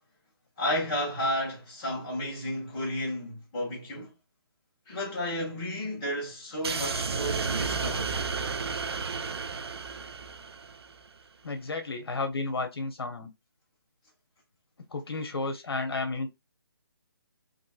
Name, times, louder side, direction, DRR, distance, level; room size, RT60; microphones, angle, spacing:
voice 1, 0.6-4.1 4.9-8.2, left 1 dB, 15° left, 1.3 m, -32 dB
sound 1, 6.6-11.0, right 5 dB, 85° right, 0.5 m, -32 dB
voice 2, 11.4-13.3 14.9-16.3, left 3 dB, 75° left, 1.0 m, -32 dB
3.1 x 2.6 x 2.4 m
hypercardioid pair, 175°, 13 cm